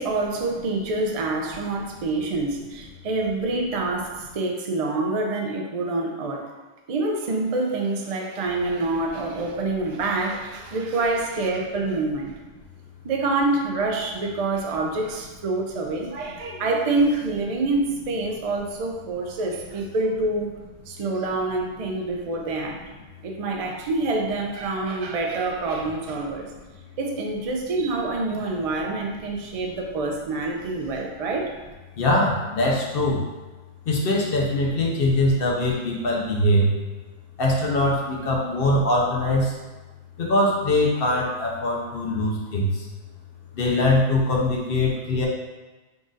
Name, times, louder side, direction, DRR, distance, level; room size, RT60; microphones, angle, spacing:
voice 1, 0.0-6.5 6.9-12.3 13.0-20.5 20.9-22.8 23.2-26.5 27.0-31.6, right 2 dB, 75° right, 1 dB, 0.3 m, -26 dB
voice 2, 32.0-33.2 33.9-36.7 37.4-39.5 40.2-42.8 43.5-45.3, left 1 dB, 55° left, -2 dB, 0.8 m, -22 dB
3.9 x 2.4 x 3.8 m, 1.2 s
omnidirectional pair, 1.3 m